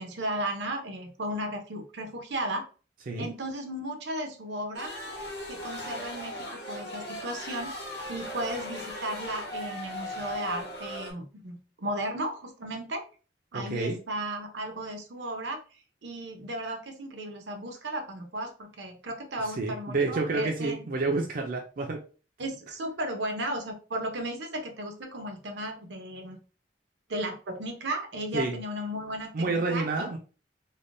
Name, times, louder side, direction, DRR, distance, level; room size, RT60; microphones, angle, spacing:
voice 1, 0.0-2.6 3.2-4.9 5.5-7.7 8.1-13.0 13.5-15.6 16.0-20.9 22.4-26.4 27.1-30.1, right 1 dB, 85° right, 4 dB, 0.7 m, -35 dB
sound 1, 4.7-11.1, left 1 dB, 70° left, 1.1 m, -38 dB
voice 2, 13.5-14.0 19.5-22.0 28.3-28.5 29.3-30.2, right 3 dB, 55° right, 2 dB, 0.4 m, -29 dB
3.4 x 2.1 x 2.5 m, 0.36 s
head